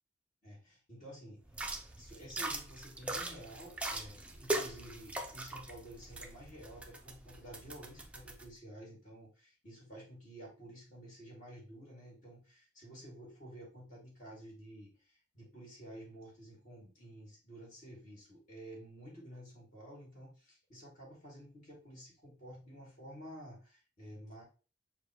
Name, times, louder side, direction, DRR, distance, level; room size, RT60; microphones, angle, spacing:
voice 1, 0.4-1.4 1.9-24.4, right 1 dB, 45° left, -5 dB, 2.4 m, -51 dB
sound 1, 1.5-8.4, right 2 dB, 5° right, 0.4 m, -41 dB
5.9 x 2.4 x 3.0 m, 0.35 s
head